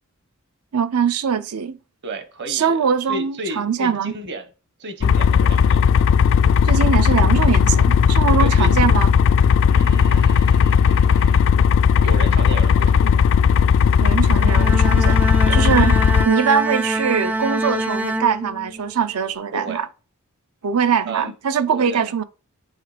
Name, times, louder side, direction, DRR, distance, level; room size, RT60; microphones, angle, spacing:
voice 1, 0.7-1.8 2.5-4.1 6.6-9.1 14.0-15.2 15.5-16.0 16.2-19.9 20.6-22.2, right 7 dB, 75° right, 0.6 m, -22 dB
voice 2, 2.0-4.5 4.8-6.0 8.4-8.7 9.7-11.5 11.9-13.2 15.4-15.6 19.5-19.8 21.0-21.3 21.7-22.1, right 1 dB, 55° right, 1.2 m, -33 dB
sound 1, 5.0-16.3, left 7 dB, 60° left, 0.3 m, -16 dB
Bowed string instrument, 14.3-19.0, right 2 dB, 5° right, 0.4 m, -25 dB
8.1 x 3.0 x 5.0 m
head